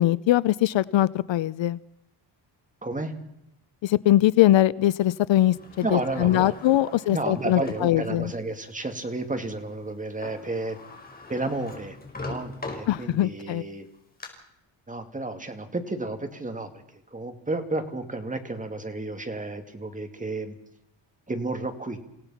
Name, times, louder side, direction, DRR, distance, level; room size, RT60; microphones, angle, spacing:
voice 1, 0.0-1.8 3.8-8.3 12.9-13.6, left 14 dB, 65° left, 19 dB, 0.7 m, -22 dB
voice 2, 2.8-3.1 5.8-6.8 7.1-10.8 11.3-13.9 14.9-20.5 21.3-22.0, right 2 dB, 15° right, 7 dB, 2.4 m, -32 dB
Sliding door, 5.3-8.0 8.5-8.6 9.9-10.0 10.2-13.4 13.8-14.3, left 3 dB, 20° left, 5.4 m, -41 dB
27.5 x 17.5 x 5.8 m, 0.79 s
cardioid pair, 135°, 48 cm